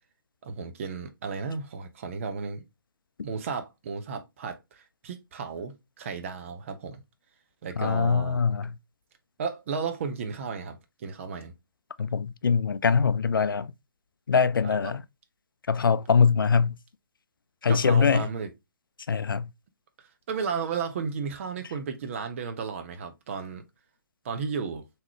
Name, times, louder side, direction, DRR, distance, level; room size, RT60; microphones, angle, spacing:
voice 1, 0.4-2.6 3.2-7.0 7.6-8.4 9.4-11.5 14.6-14.9 17.7-18.5 20.3-23.6 24.2-24.8, right 5 dB, 35° right, 0.7 m, -34 dB
voice 2, 7.8-8.7 12.0-13.7 14.3-15.0 15.7-16.8 17.6-18.3 19.1-19.5, left 5 dB, 75° left, 0.4 m, -23 dB
3.7 x 3.0 x 3.0 m
figure-of-eight pair, 140°, 11 cm